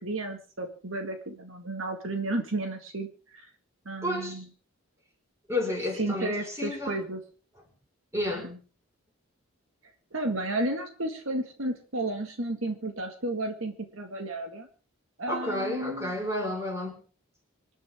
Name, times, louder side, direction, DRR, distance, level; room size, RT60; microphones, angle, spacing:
voice 1, 0.0-3.5 3.9-4.5 6.0-7.2 8.4-8.6 10.1-14.7 15.2-16.1, right 2 dB, 70° right, 5 dB, 2.1 m, -32 dB
voice 2, 4.0-4.4 5.5-7.0 8.1-8.5 15.3-17.0, left 1 dB, 15° right, 1 dB, 5.1 m, -31 dB
26.5 x 10.5 x 3.7 m, 0.38 s
head